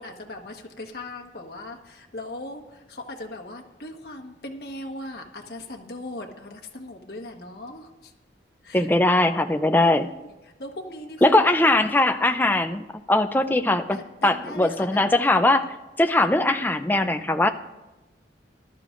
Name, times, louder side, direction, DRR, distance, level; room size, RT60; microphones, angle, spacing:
voice 1, 0.0-8.1 8.6-8.9 9.8-10.3 10.6-11.5 13.9-15.1, left 1 dB, 60° left, 2 dB, 1.4 m, -39 dB
voice 2, 8.7-10.1 11.2-14.0 14.2-15.7 16.0-17.5, left 2 dB, 10° left, 7 dB, 0.4 m, -20 dB
19.5 x 12.5 x 2.5 m, 1.0 s
head